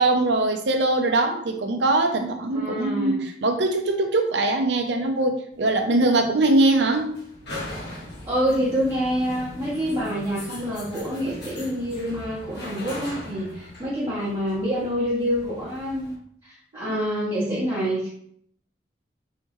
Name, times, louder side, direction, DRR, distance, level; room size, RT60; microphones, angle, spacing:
voice 1, 0.0-7.2 16.7-17.6, right 2 dB, 85° right, 4 dB, 0.7 m, -22 dB
voice 2, 2.5-3.2 8.3-16.2 16.4-18.1, equal, 20° right, -11 dB, 1.3 m, -27 dB
sound 1, 5.5-16.1, left 1 dB, 85° left, 1.6 m, -40 dB
4.6 x 3.6 x 3.1 m, 0.65 s
head